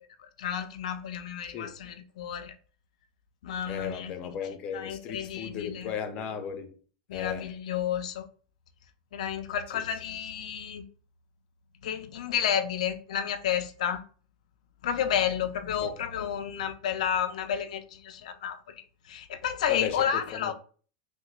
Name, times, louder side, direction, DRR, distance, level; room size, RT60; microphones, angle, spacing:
voice 1, 0.2-2.5 3.4-4.1 4.7-5.9 7.1-8.3 9.1-10.8 11.8-14.0 14.8-18.6 19.1-20.5, left 9 dB, 85° left, 0.4 m, -31 dB
voice 2, 1.5-1.8 3.7-6.7 7.1-7.5 9.7-9.8 15.8-15.9 19.7-20.5, left 7 dB, 30° left, 0.5 m, -36 dB
5.8 x 2.0 x 2.4 m
supercardioid pair, 160°, 4 cm